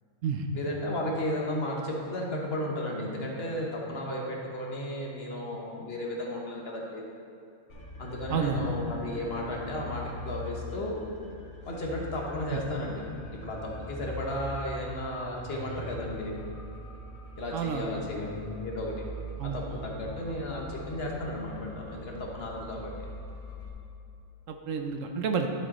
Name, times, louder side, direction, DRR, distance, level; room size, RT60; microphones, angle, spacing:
voice 1, 0.5-7.0 8.0-11.0 11.6-13.1 13.4-16.3 17.4-19.0 19.4-22.9, left 1 dB, 50° left, -1 dB, 1.2 m, -34 dB
sound 1, 7.7-23.7, left 1 dB, 75° left, 1.7 m, -42 dB
voice 2, 8.3-8.7 12.5-12.6 17.5-17.9 19.4-19.6 24.5-25.5, right 6 dB, 70° right, 5 dB, 1.0 m, -30 dB
11.0 x 5.1 x 4.1 m, 2.6 s
omnidirectional pair, 1.4 m